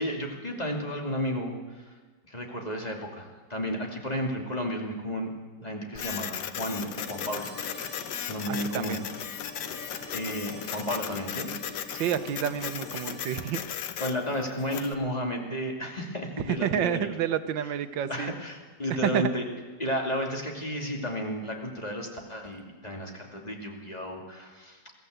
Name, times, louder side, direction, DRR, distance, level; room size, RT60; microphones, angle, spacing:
voice 1, 0.0-1.8 2.3-5.3 5.6-9.0 10.1-11.5 14.0-17.1 18.1-19.5 19.8-24.8, equal, 20° left, 1 dB, 2.6 m, -33 dB
Printer, 6.0-14.9, left 9 dB, 70° left, 1.5 m, -37 dB
sound 1, 6.8-14.8 16.9-17.0, left 1 dB, 5° left, 7.1 m, -45 dB
voice 2, 8.5-9.0 11.9-13.6 16.5-18.3 19.0-19.2, right 10 dB, 90° right, 11 dB, 1.6 m, -29 dB
22.0 x 15.0 x 8.0 m, 1.4 s
omnidirectional pair, 2.0 m